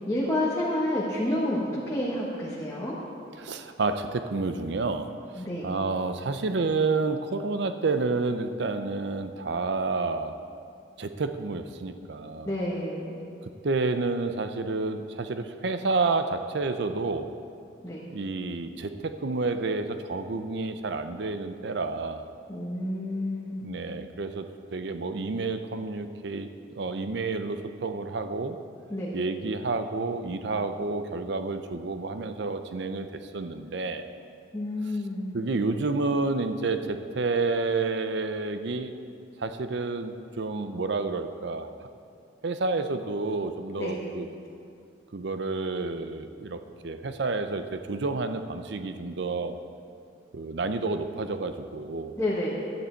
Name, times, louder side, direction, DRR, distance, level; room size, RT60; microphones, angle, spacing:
voice 1, 0.1-3.0 5.3-5.7 12.4-13.2 17.8-18.0 22.5-23.6 28.9-29.1 34.5-35.3 43.8-44.1 52.2-52.5, left 1 dB, 15° left, -7 dB, 1.2 m, -29 dB
voice 2, 3.4-10.3 11.0-12.5 13.6-17.3 18.1-22.3 23.6-26.5 26.7-28.6 29.1-34.0 35.3-39.0 39.4-41.7 42.4-44.3 45.1-49.6 50.3-52.2, right 3 dB, 60° right, 9 dB, 0.5 m, -30 dB
12.0 x 9.9 x 4.5 m, 2.5 s
head